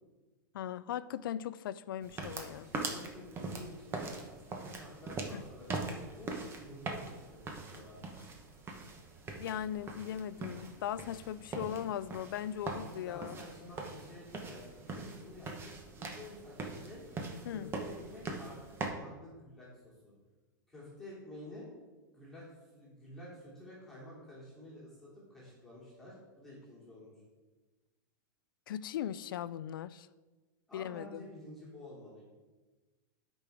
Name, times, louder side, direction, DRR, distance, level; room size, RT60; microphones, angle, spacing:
voice 1, 0.5-2.7 5.3-5.4 9.4-13.4 17.5-17.7 28.7-30.1 30.7-31.2, left 10 dB, 85° left, 16 dB, 0.4 m, -39 dB
sound 1, 2.0-18.9, right 3 dB, 20° right, 1.0 m, -42 dB
voice 2, 2.6-8.0 12.7-17.0 17.4-20.1 20.7-21.7 22.1-22.4 22.7-27.2 30.7-32.2, left 1 dB, 5° left, -9 dB, 2.9 m, -51 dB
12.5 x 5.3 x 3.5 m, 1.2 s
supercardioid pair, 145°, 11 cm